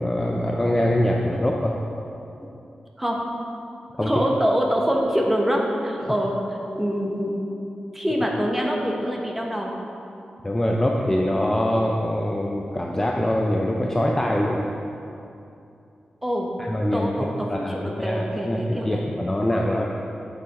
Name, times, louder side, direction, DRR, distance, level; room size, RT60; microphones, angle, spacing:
voice 1, 0.0-1.8 4.0-4.1 6.0-6.1 10.4-14.7 16.6-19.9, left 1 dB, 15° left, -1 dB, 0.5 m, -24 dB
voice 2, 4.1-6.3 6.7-7.3 7.9-9.7 16.2-16.5 16.9-19.0, equal, 5° right, -1 dB, 0.9 m, -24 dB
8.1 x 7.0 x 4.1 m, 2.7 s
wide cardioid pair, 160°, 3 cm